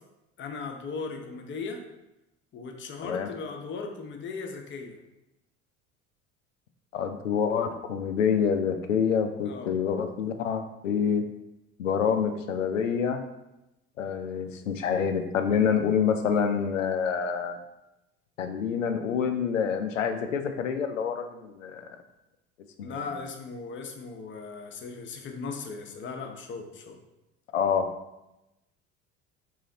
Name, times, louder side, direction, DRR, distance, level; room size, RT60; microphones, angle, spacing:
voice 1, 0.4-1.8 2.5-5.0 9.5-9.7 22.8-27.0, left 4 dB, 30° left, 3 dB, 0.7 m, -37 dB
voice 2, 6.9-11.2 11.8-13.2 14.0-17.6 18.4-21.9 22.8-22.9 27.5-27.9, left 7 dB, 80° left, 6 dB, 0.6 m, -27 dB
4.1 x 3.1 x 3.8 m, 0.94 s
figure-of-eight pair, 65°, 38 cm